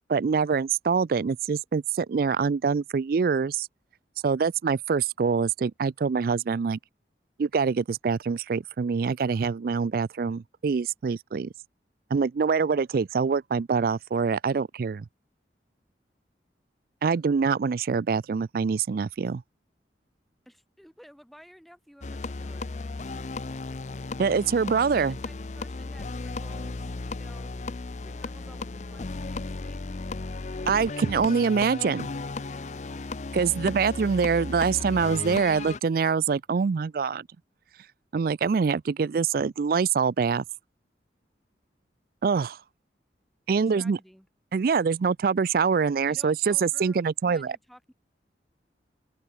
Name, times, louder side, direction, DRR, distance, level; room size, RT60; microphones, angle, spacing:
voice 1, 0.1-3.7 4.2-6.8 7.4-11.5 12.1-15.0 17.0-19.4 24.2-25.2 30.7-32.1 33.3-37.3 38.1-40.4 42.2-42.6 43.5-44.0 44.5-47.6, right 5 dB, 55° right, 0.4 m, -25 dB
voice 2, 20.4-22.7 24.8-30.3 43.7-44.3 46.1-47.9, equal, ahead, 3.4 m, -53 dB
sound 1, 22.0-35.8, left 3 dB, 40° left, 0.6 m, -35 dB
open air
head